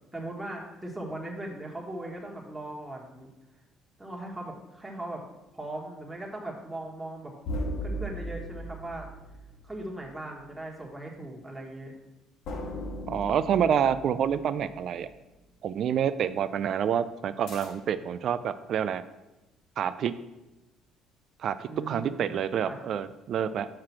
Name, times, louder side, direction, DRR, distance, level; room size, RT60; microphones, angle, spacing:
voice 1, 0.1-3.3 4.0-5.2 5.5-7.3 7.8-9.1 9.6-11.9 21.7-22.8, right 1 dB, 10° right, -2 dB, 1.6 m, -39 dB
sound 1, 7.4-10.2 12.4-15.1 17.5-18.1, equal, 80° left, 1.8 m, -38 dB
voice 2, 13.1-15.1 15.6-19.0 19.8-20.1 21.4-23.7, right 8 dB, 60° right, 13 dB, 0.3 m, -28 dB
5.8 x 4.8 x 5.8 m, 1.0 s
supercardioid pair, 85°, 0 cm